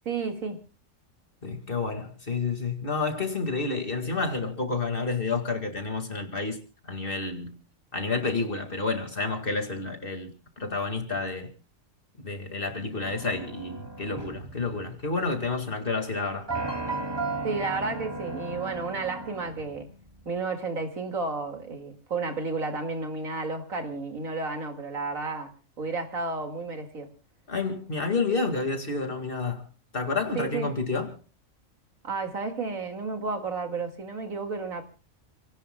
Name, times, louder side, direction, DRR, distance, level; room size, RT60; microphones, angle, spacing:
voice 1, 0.1-0.6 17.4-19.9 20.3-25.5 25.8-27.1 30.3-30.7 32.0-34.8, right 4 dB, 80° right, 2.6 m, -32 dB
voice 2, 1.4-7.6 7.9-10.3 10.6-11.5 12.2-16.5 27.5-29.7 29.9-31.2, left 3 dB, 40° left, 2.2 m, -30 dB
sound 1, 13.0-15.4 16.5-20.1, right 3 dB, 20° right, 2.5 m, -35 dB
29.0 x 17.5 x 2.2 m
omnidirectional pair, 1.4 m